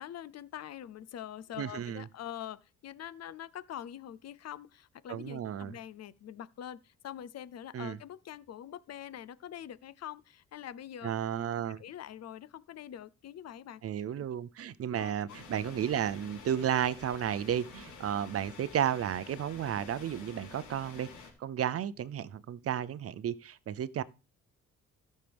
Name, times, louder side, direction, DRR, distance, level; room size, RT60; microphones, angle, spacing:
voice 1, 0.0-11.1 11.8-13.8 14.2-14.3 15.0-15.2 15.6-15.7, left 10 dB, 55° left, 0.7 m, -44 dB
voice 2, 1.6-2.0 5.1-5.7 7.7-8.0 11.0-11.8 13.8-21.1 21.4-24.0, right 9 dB, 50° right, 0.6 m, -33 dB
sound 1, 15.3-21.3, left 4 dB, 80° left, 3.9 m, -50 dB
16.0 x 6.6 x 3.5 m
cardioid pair, 90°, 30 cm